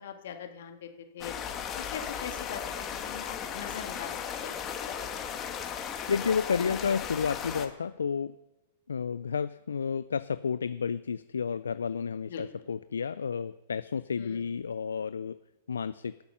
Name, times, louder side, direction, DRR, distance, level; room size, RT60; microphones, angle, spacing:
voice 1, 0.0-1.3 1.7-4.5 5.0-5.1 12.3-12.4 14.2-14.5, left 8 dB, 70° left, 5 dB, 1.8 m, -42 dB
sound 1, 1.2-7.7, left 8 dB, 30° left, 1.6 m, -36 dB
voice 2, 6.1-8.4 8.9-15.4 15.7-16.1, left 6 dB, 85° left, 15 dB, 0.3 m, -31 dB
20.0 x 7.0 x 5.6 m, 1.0 s
hypercardioid pair, 110°, 0 cm